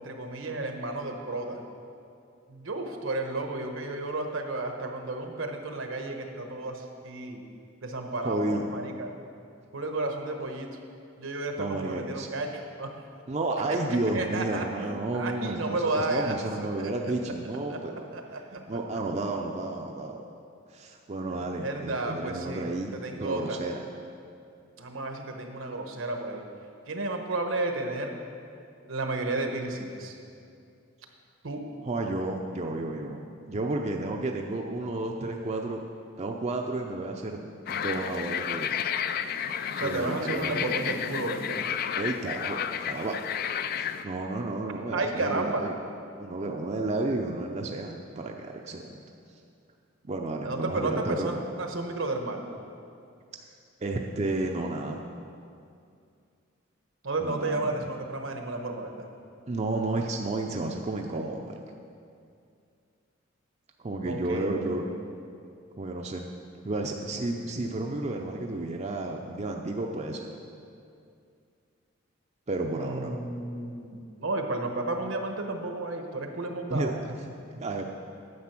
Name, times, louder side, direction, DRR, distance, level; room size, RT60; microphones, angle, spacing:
voice 1, 0.0-1.6 2.5-7.4 7.8-9.1 9.7-10.8 11.2-12.9 13.9-17.3 17.7-19.0 21.3-23.6 24.8-26.4 26.9-28.2 28.9-30.2 31.4-31.7 39.7-41.6 44.9-45.7 50.4-52.6 57.0-59.1 64.0-65.0 72.7-77.0, right 2 dB, 75° right, 4 dB, 1.1 m, -32 dB
voice 2, 8.2-8.6 11.6-12.3 13.3-17.9 18.5-20.2 20.7-22.9 23.2-23.8 31.8-35.8 36.2-38.8 39.8-40.6 41.9-42.6 42.8-43.2 43.8-45.8 46.2-49.0 50.0-51.3 53.8-55.0 57.2-57.9 59.5-61.6 63.8-64.8 65.8-66.3 66.6-70.3 72.5-73.2 76.7-77.1 77.5-77.9, right 2 dB, 35° right, 2 dB, 0.5 m, -32 dB
sound 1, 37.7-44.0, left 8 dB, 45° left, 0.3 m, -31 dB
9.5 x 7.6 x 5.9 m, 2.5 s
head